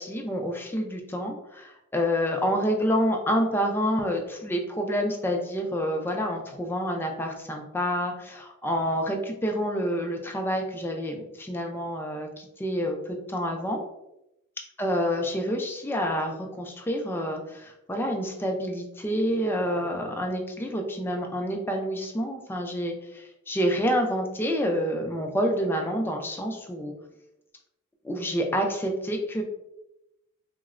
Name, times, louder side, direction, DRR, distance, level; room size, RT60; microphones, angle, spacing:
voice 1, 0.0-13.8 14.8-26.9 28.0-29.4, equal, 10° left, 2 dB, 0.3 m, -28 dB
3.6 x 2.0 x 2.4 m, 0.89 s
head